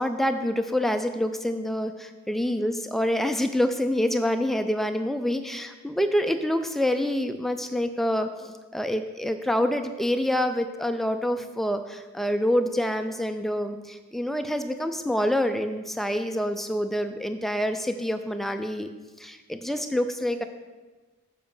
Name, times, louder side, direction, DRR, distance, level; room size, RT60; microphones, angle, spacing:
voice 1, 0.0-18.9 19.2-20.4, equal, ahead, 7 dB, 0.3 m, -27 dB
7.2 x 4.8 x 5.4 m, 1.3 s
head